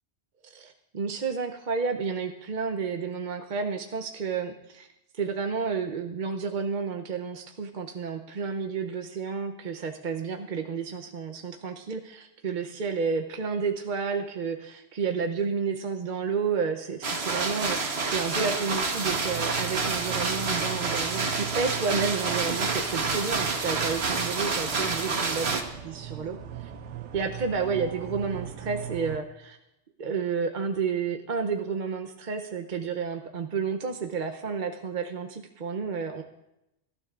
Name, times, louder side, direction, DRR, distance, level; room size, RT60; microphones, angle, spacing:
voice 1, 0.5-4.9 5.2-26.7 27.1-29.6 30.0-36.2, right 5 dB, 50° right, 5 dB, 0.8 m, -31 dB
sound 1, 17.0-25.6, right 4 dB, 65° right, 1.5 m, -28 dB
sound 2, 19.1-29.2, right 11 dB, 90° right, 1.0 m, -39 dB
25.0 x 12.5 x 2.4 m, 0.89 s
omnidirectional pair, 1.2 m